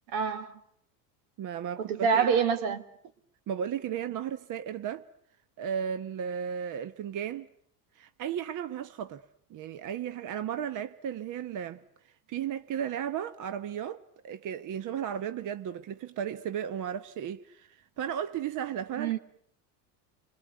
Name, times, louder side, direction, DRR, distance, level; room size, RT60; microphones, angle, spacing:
voice 1, 0.1-0.6 1.8-2.8 19.0-19.2, right 6 dB, 70° right, 3.1 m, -26 dB
voice 2, 1.4-2.3 3.5-5.0 5.6-7.5 7.9-9.2 9.5-11.8 12.3-19.2, right 9 dB, 40° right, 1.1 m, -35 dB
30.0 x 21.0 x 9.3 m
supercardioid pair, 105°, 46 cm